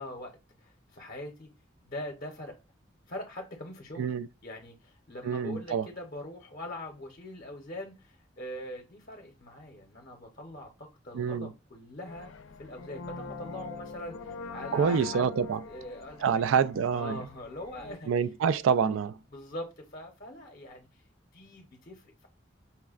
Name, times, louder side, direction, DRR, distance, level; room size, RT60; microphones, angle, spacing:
voice 1, 0.0-1.5 1.8-2.6 3.1-12.3 12.6-15.3 15.7-16.7 17.0-18.1 18.4-18.6 19.3-21.0 21.3-22.3, left 1 dB, 45° left, 0.7 m, -42 dB
voice 2, 5.2-5.9 11.1-11.5 14.7-15.6 16.2-17.2 18.1-19.2, right 6 dB, 85° right, 0.3 m, -27 dB
sound 1, 12.0-18.0, left 4 dB, 85° left, 0.4 m, -43 dB
5.5 x 2.1 x 2.3 m
head